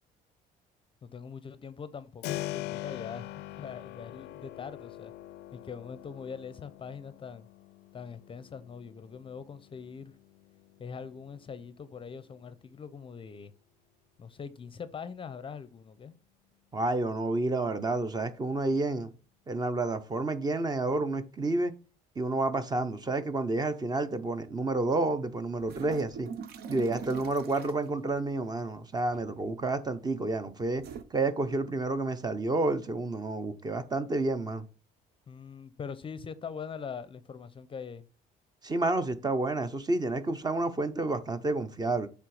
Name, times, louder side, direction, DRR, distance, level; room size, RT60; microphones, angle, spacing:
voice 1, 1.0-5.1 5.5-7.5 7.9-10.1 10.8-13.5 14.2-16.1 35.3-38.1, left 6 dB, 30° left, 0.6 m, -42 dB
Keyboard (musical), 2.2-12.9, left 15 dB, 80° left, 0.4 m, -43 dB
voice 2, 16.7-19.1 19.5-21.7 22.2-26.3 26.7-30.8 31.1-34.6 38.6-42.1, right 2 dB, 25° right, 0.7 m, -30 dB
sound 1, 25.6-27.9 29.1-29.5 30.7-31.0, right 6 dB, 70° right, 0.8 m, -41 dB
7.5 x 3.5 x 4.8 m
cardioid pair, 110°, 17 cm